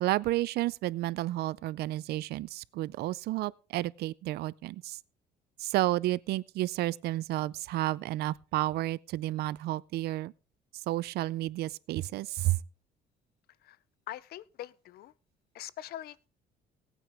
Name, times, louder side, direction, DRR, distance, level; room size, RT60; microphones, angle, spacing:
voice 1, 0.0-5.0 5.6-10.3 10.7-12.6, right 16 dB, 70° right, 0.5 m, -31 dB
voice 2, 14.1-15.1 15.5-16.3, left 13 dB, 65° left, 0.6 m, -43 dB
18.0 x 9.0 x 3.4 m
cardioid pair, 110°, 17 cm